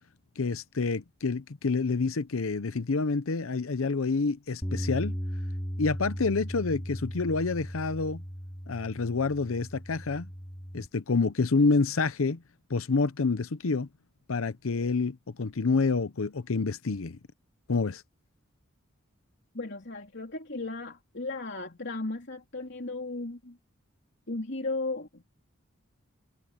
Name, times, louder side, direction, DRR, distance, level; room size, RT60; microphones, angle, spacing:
voice 1, 0.4-5.2 5.8-8.2 8.7-10.3 10.7-12.4 12.7-13.9 14.3-17.2 17.7-18.0, left 4 dB, 85° left, 0.7 m, -28 dB
Bass guitar, 4.6-10.9, equal, 15° left, 2.6 m, -37 dB
voice 2, 19.5-23.6 24.3-25.2, left 2 dB, 55° left, 3.2 m, -35 dB
head